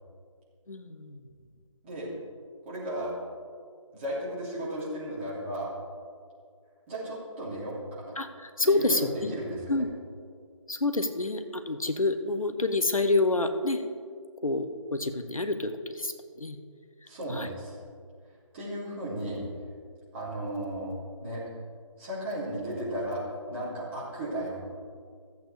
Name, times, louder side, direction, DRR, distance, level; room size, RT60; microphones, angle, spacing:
voice 1, 0.7-1.2 8.2-9.3 9.7-9.9 10.7-13.9 14.4-16.6 17.3-17.5, left 2 dB, 85° left, 9 dB, 0.9 m, -28 dB
voice 2, 2.6-3.1 3.9-5.7 6.9-8.2 8.6-9.9 17.1-17.8 18.5-19.4 20.1-20.9 21.2-21.4 22.0-23.2 23.5-24.6, right 1 dB, 20° right, -8 dB, 2.9 m, -35 dB
14.5 x 8.0 x 3.4 m, 2.1 s
figure-of-eight pair, 155°, 17 cm